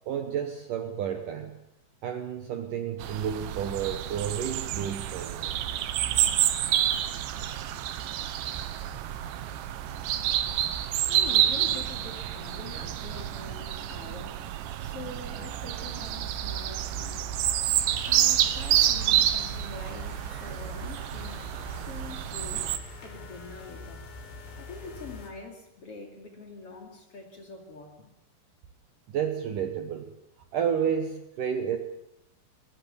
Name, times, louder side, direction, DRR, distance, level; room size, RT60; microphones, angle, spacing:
voice 1, 0.0-1.6 2.0-5.5 14.8-14.9 29.1-30.1 30.5-31.8, right 8 dB, 65° right, 6 dB, 2.2 m, -31 dB
sound 1, 3.0-22.8, right 12 dB, 85° right, 3.4 m, -28 dB
voice 2, 11.1-14.4 14.8-17.4 18.0-21.5 21.9-24.1 24.6-28.1, left 3 dB, 40° left, 3 dB, 3.0 m, -44 dB
sound 2, 17.9-25.3, left 3 dB, 75° left, 6.6 m, -44 dB
21.0 x 20.5 x 7.1 m, 0.82 s
omnidirectional pair, 5.1 m